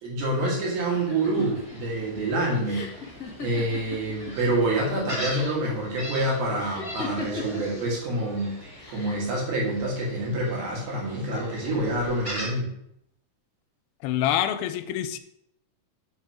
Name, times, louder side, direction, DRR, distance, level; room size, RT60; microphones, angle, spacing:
voice 1, 0.0-2.8 3.4-8.5 8.9-12.7, right 1 dB, 80° right, -3 dB, 3.9 m, -27 dB
sound 1, 0.9-4.5 4.8-5.5 6.6-7.8 8.8-9.3, left 3 dB, 60° left, 0.9 m, -37 dB
Gull seagull, 0.9-12.5, equal, 35° right, 0.5 m, -41 dB
voice 2, 14.0-15.2, left 11 dB, 90° left, 10 dB, 2.5 m, -26 dB
6.9 x 4.4 x 4.9 m, 0.75 s
omnidirectional pair, 4.3 m